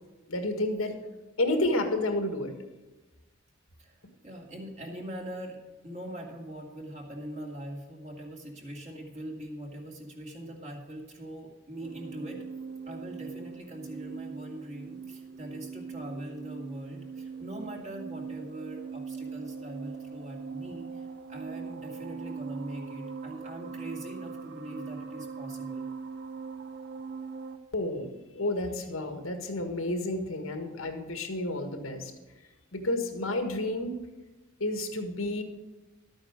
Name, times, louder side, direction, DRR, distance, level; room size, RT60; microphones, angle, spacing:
voice 1, 0.3-1.0 1.4-2.5 27.7-32.1 32.7-34.0 34.6-35.4, left 1 dB, 90° left, 5 dB, 1.7 m, -30 dB
voice 2, 4.2-5.6 5.8-12.4 12.9-25.9, right 1 dB, 35° right, 0 dB, 2.4 m, -42 dB
sound 1, 11.8-27.6, right 5 dB, 55° right, 0.9 m, -41 dB
12.5 x 8.9 x 5.2 m, 1.2 s
head